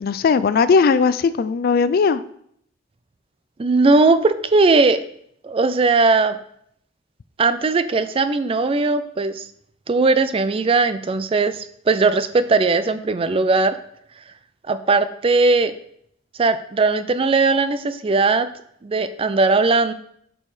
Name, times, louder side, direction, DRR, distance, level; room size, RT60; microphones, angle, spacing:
voice 1, 0.0-2.2, left 5 dB, 50° left, 14 dB, 0.3 m, -18 dB
voice 2, 3.6-5.0 5.4-6.4 7.4-9.5 9.9-13.8 14.7-15.7 16.4-18.5 18.8-19.9, right 3 dB, 30° right, 12 dB, 0.4 m, -18 dB
8.4 x 5.4 x 3.2 m, 0.69 s
head